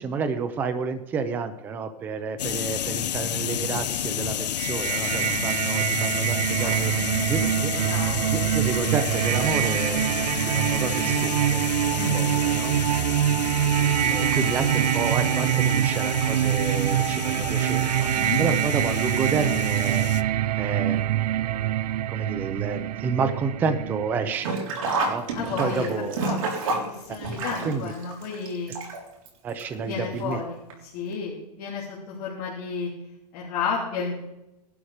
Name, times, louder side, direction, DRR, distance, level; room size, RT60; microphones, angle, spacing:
voice 1, 0.0-6.9 7.3-7.7 8.3-10.0 10.5-11.6 11.9-12.7 14.1-18.1 18.4-20.1 20.6-21.2 22.1-24.5 25.1-25.2 25.6-26.2 27.1-27.2 27.6-27.9 29.4-30.4, right 5 dB, 10° right, 9 dB, 0.6 m, -30 dB
sound 1, 2.4-20.2, left 10 dB, 85° left, 0.8 m, -31 dB
sound 2, 4.6-24.3, right 12 dB, 75° right, 0.5 m, -25 dB
voice 2, 7.9-8.3 11.9-12.2 14.0-14.2 18.2-18.4 25.3-25.9 26.2-28.7 29.7-32.9 33.3-34.2, left 5 dB, 30° left, -6 dB, 3.4 m, -32 dB
Sink (filling or washing), 24.3-29.3 29.6-29.7 30.7-30.8 31.1-31.2, right 3 dB, 55° right, 3.8 m, -29 dB
18.5 x 11.5 x 5.0 m, 0.93 s
supercardioid pair, 175°, 21 cm